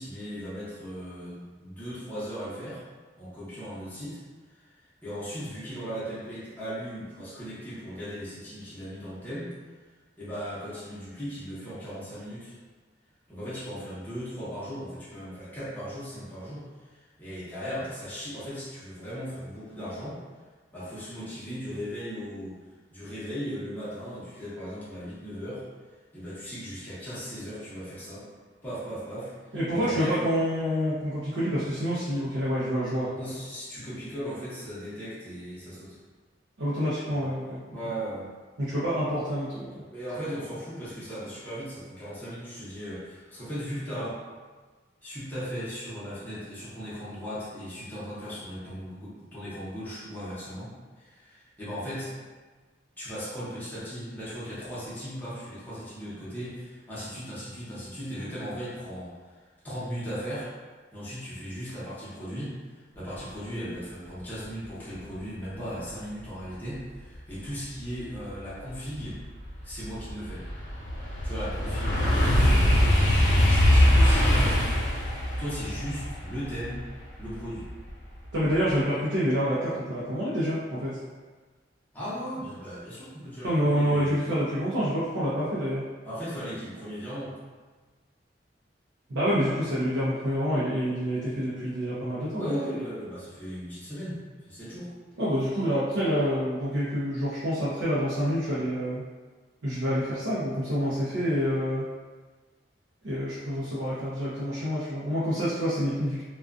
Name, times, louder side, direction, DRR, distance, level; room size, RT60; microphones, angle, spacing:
voice 1, 0.0-2.8 3.2-4.2 4.5-9.5 10.2-12.6 13.3-20.2 20.7-22.6 22.9-25.6 26.1-28.3 28.6-30.2 33.2-36.0 37.1-37.3 37.7-38.3 39.9-44.2 45.0-50.7 51.0-52.1 53.0-59.3 59.6-60.5 60.9-69.2 69.6-70.4 71.2-74.6 75.4-76.8 77.2-77.7 81.9-84.1 86.0-87.3 92.3-94.9 95.5-95.7, equal, 10° left, -11 dB, 0.7 m, -37 dB
voice 2, 29.5-33.2 36.6-37.6 38.6-39.7 78.3-81.0 83.4-85.8 89.1-92.6 95.2-99.0 99.6-101.8 103.0-106.2, equal, 75° right, -11 dB, 0.6 m, -27 dB
sound 1, 68.3-68.4 68.9-77.9 78.3-78.7, left 1 dB, 70° left, 0.6 m, -23 dB
2.4 x 2.2 x 2.4 m, 1.4 s
head